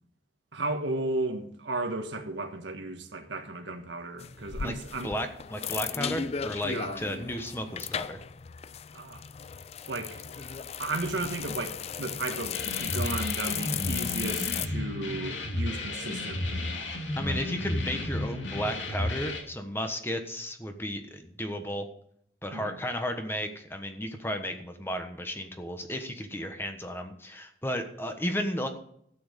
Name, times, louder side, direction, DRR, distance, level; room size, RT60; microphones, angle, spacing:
voice 1, 0.5-5.1 6.7-7.0 8.9-9.2 9.9-16.9 17.2-17.4 22.5-22.8, right 2 dB, 75° right, 1.5 m, -34 dB
sound 1, 4.2-14.7, left 8 dB, 35° left, 0.3 m, -36 dB
voice 2, 5.0-8.2 17.2-21.9 22.4-28.7, equal, 10° left, 1.2 m, -34 dB
sound 2, 12.5-19.4, left 2 dB, 75° left, 2.8 m, -33 dB
12.5 x 8.8 x 5.2 m
head